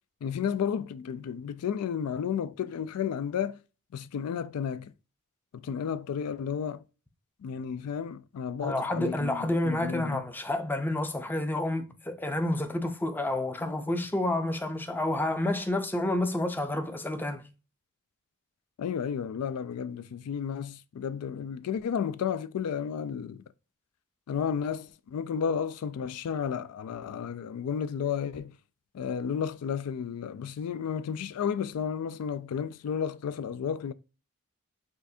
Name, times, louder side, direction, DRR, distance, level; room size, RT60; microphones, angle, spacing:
voice 1, 0.2-3.6 3.9-4.9 5.5-6.8 7.4-10.2 18.8-23.4 24.3-28.5 28.9-33.9, left 7 dB, 80° left, 0.3 m, -32 dB
voice 2, 8.6-17.4, left 1 dB, 10° left, 0.5 m, -29 dB
6.3 x 2.5 x 2.6 m
head